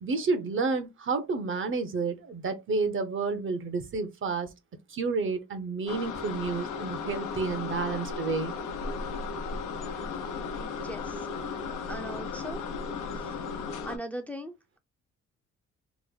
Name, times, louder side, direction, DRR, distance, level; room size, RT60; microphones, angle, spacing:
voice 1, 0.0-4.5 4.9-8.5, right 4 dB, 40° right, 0.7 m, -30 dB
sound 1, 5.9-14.0, left 5 dB, 90° left, 0.7 m, -35 dB
voice 2, 10.5-11.3 11.9-12.6 13.1-13.4 13.8-14.8, equal, 5° left, 0.5 m, -40 dB
3.1 x 2.0 x 3.9 m
cardioid pair, 90°, 30 cm